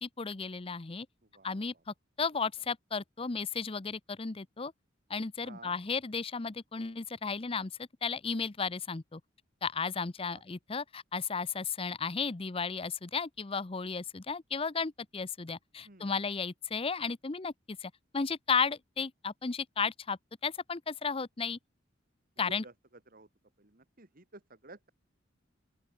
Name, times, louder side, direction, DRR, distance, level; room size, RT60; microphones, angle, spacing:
voice 1, 0.0-1.1 1.4-4.7 5.1-9.2 9.6-21.6 22.4-22.6, left 5 dB, 30° left, 0.7 m, -34 dB
voice 2, 1.3-1.6 5.4-5.8 10.2-10.4 15.8-16.1 22.4-22.7 23.1-23.3 23.6-24.9, right 2 dB, 50° right, 2.5 m, -53 dB
open air
head